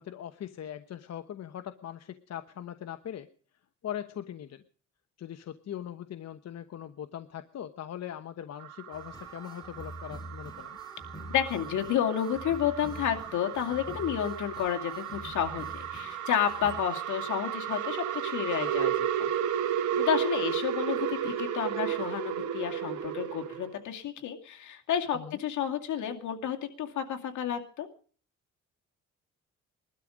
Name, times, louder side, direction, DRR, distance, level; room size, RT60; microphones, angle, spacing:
voice 1, 0.0-3.3 3.8-4.6 5.2-10.8 25.1-25.4, left 10 dB, 60° left, 9 dB, 1.1 m, -40 dB
sound 1, 8.6-23.7, right 10 dB, 75° right, 2.1 m, -33 dB
sound 2, 8.9-16.8, equal, 15° left, 3.7 m, -46 dB
voice 2, 11.3-19.3 20.0-27.9, left 9 dB, 75° left, 3 dB, 2.4 m, -31 dB
21.0 x 12.5 x 5.1 m, 0.44 s
cardioid pair, 90°, 30 cm